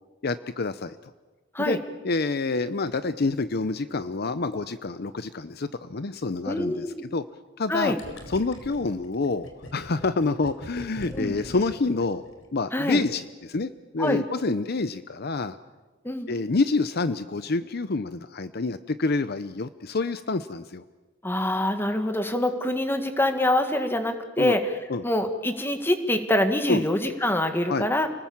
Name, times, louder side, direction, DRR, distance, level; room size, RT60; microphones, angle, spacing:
voice 1, 0.2-1.0 1.6-1.8 2.0-6.9 7.1-7.2 7.6-7.9 8.3-12.2 12.5-15.6 16.3-20.8 24.4-24.6 24.9-25.0 26.7-26.8 27.7-27.9, left 3 dB, 55° left, 13 dB, 0.7 m, -27 dB
voice 2, 6.5-7.0 7.7-8.0 11.1-11.3 12.7-13.0 14.0-14.2 16.0-16.3 21.2-24.6 25.0-28.1, left 1 dB, 10° left, 7 dB, 1.9 m, -25 dB
Gurgling, 8.0-12.7, equal, 75° left, 4.0 m, -42 dB
30.0 x 19.5 x 7.3 m, 1.3 s
head